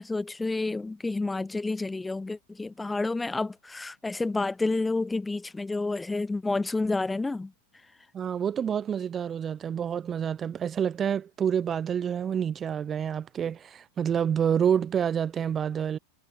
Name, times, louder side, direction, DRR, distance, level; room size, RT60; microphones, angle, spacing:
voice 1, 0.0-7.5, left 3 dB, 10° left, 0.5 m, -29 dB
voice 2, 8.1-16.0, right 8 dB, 25° right, 1.2 m, -28 dB
figure-of-eight pair, 90°, 0 cm